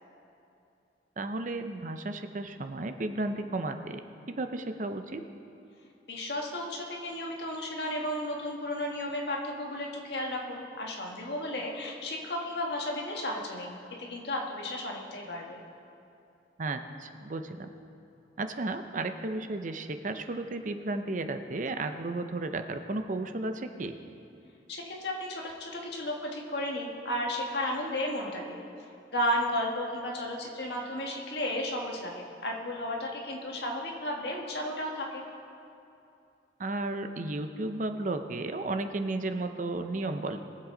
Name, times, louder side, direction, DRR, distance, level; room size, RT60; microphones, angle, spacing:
voice 1, 1.2-4.0 4.3-5.2 16.6-17.7 18.4-24.0 36.6-40.4, right 2 dB, 45° right, 8 dB, 0.6 m, -33 dB
voice 2, 6.1-15.6 24.7-28.6 29.1-35.2, left 1 dB, 65° left, 0 dB, 1.6 m, -33 dB
22.0 x 7.6 x 3.9 m, 2.7 s
head